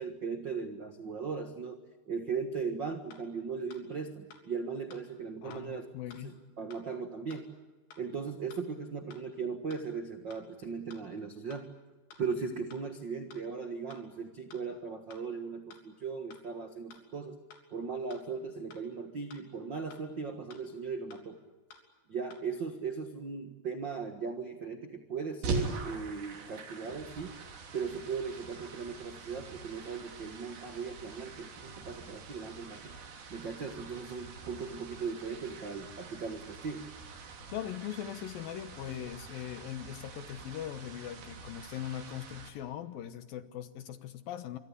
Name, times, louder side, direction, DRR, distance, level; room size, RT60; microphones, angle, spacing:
voice 1, 0.0-1.8 2.1-5.9 6.2-7.5 8.0-11.7 12.2-17.4 17.7-21.4 22.1-27.3 27.7-33.0 33.3-36.9, right 5 dB, 90° right, 7 dB, 1.0 m, -38 dB
sound 1, 3.1-3.2 3.7-3.8 4.3-4.4 4.9-5.0 5.5-5.6 6.1-6.2 6.7-6.8 7.3-7.4 7.9-8.0 8.5-8.6 9.1-9.2 9.7-9.8 10.3-10.4 10.9-11.0 11.5-11.6 12.1-12.2 12.7-12.8 13.3-13.4 13.9-14.0 14.5-14.6 15.1-15.2 15.7-15.8 16.3-16.4 16.9-17.0 17.5-17.6 18.1-18.2 18.7-18.8 19.3-19.4 19.9-20.0 20.5-20.6 21.1-21.2 21.7-21.8 22.3-22.4, left 4 dB, 90° left, 5.6 m, -54 dB
voice 2, 5.4-6.4 37.5-44.6, left 10 dB, 70° left, 11 dB, 2.5 m, -40 dB
sound 2, 25.4-42.5, right 3 dB, 60° right, 4.8 m, -44 dB
26.5 x 24.0 x 8.4 m, 1.2 s
omnidirectional pair, 4.9 m